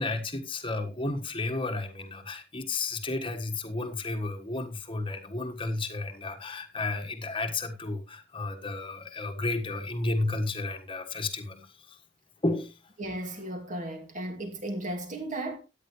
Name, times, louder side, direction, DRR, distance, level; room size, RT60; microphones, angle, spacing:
voice 1, 0.0-12.0 12.4-12.7, left 2 dB, 25° left, 1.6 m, -32 dB
voice 2, 13.0-15.6, right 1 dB, 40° right, 2.7 m, -35 dB
13.5 x 9.4 x 3.2 m
head